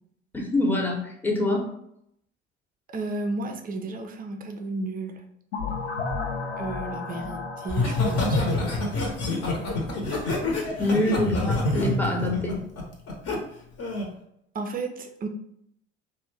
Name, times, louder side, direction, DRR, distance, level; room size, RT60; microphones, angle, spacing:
voice 1, 0.3-1.7 10.8-12.6, left 1 dB, 5° left, -1 dB, 0.7 m, -25 dB
voice 2, 2.9-5.2 6.6-8.4 8.6-8.8 14.5-15.3, right 2 dB, 25° right, 5 dB, 0.4 m, -33 dB
sound 1, 5.5-10.2, left 4 dB, 80° left, 0.6 m, -34 dB
Laughter, 7.7-13.4 13.8-14.1, left 2 dB, 45° left, 0.9 m, -26 dB
2.5 x 2.1 x 3.2 m, 0.75 s
hypercardioid pair, 65°, 34 cm